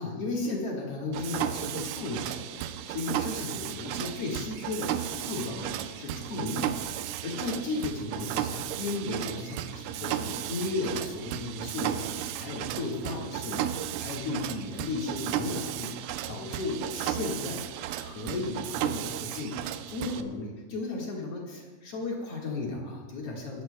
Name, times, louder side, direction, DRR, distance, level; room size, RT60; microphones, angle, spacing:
voice 1, 0.0-13.7 14.0-15.9 16.3-17.6 17.9-23.6, left 3 dB, 75° left, -3 dB, 1.3 m, -35 dB
Mechanisms, 1.1-20.2, right 11 dB, 85° right, 3.0 m, -34 dB
26.0 x 13.0 x 2.2 m, 1.3 s
omnidirectional pair, 5.6 m